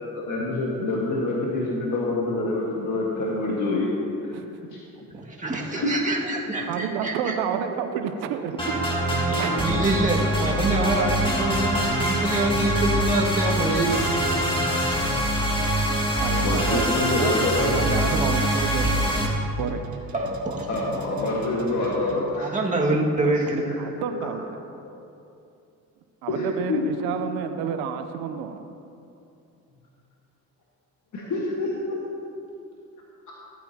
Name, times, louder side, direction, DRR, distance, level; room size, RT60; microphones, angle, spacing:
voice 1, 0.1-3.9 4.2-4.3 4.7-4.8 5.6-6.1 16.3-17.8 20.7-22.5 24.2-24.3 26.3-26.8 31.1-32.0, left 2 dB, 55° left, -4 dB, 1.6 m, -26 dB
voice 2, 5.1-7.4 9.2-14.1 20.1-20.8 22.3-23.8, right 2 dB, 20° right, -2 dB, 1.9 m, -26 dB
voice 3, 6.5-9.7 16.1-17.3 17.6-19.1 19.6-19.8 23.5-24.5 26.2-28.6, right 7 dB, 90° right, 7 dB, 0.6 m, -30 dB
sound 1, 8.6-19.3, equal, 15° left, 2.4 m, -24 dB
sound 2, 16.9-22.4, right 2 dB, 55° right, 1.4 m, -40 dB
15.0 x 8.9 x 2.8 m, 2.6 s
supercardioid pair, 60°, 36 cm